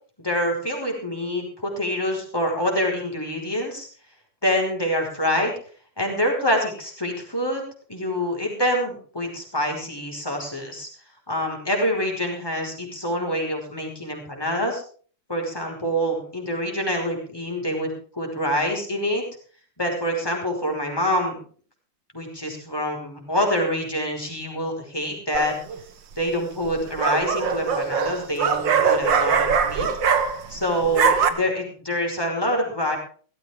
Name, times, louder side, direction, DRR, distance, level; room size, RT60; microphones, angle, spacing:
voice 1, 0.2-3.9 4.4-5.5 6.0-7.6 7.9-10.9 11.3-14.8 15.3-19.2 19.8-21.4 22.1-25.5 26.2-29.9 30.5-33.0, equal, 10° left, 1 dB, 5.3 m, -26 dB
sound 1, 25.3-25.8 26.7-30.6 30.8-31.3, right 6 dB, 70° right, 2.1 m, -22 dB
18.0 x 15.0 x 3.7 m, 0.44 s
omnidirectional pair, 2.1 m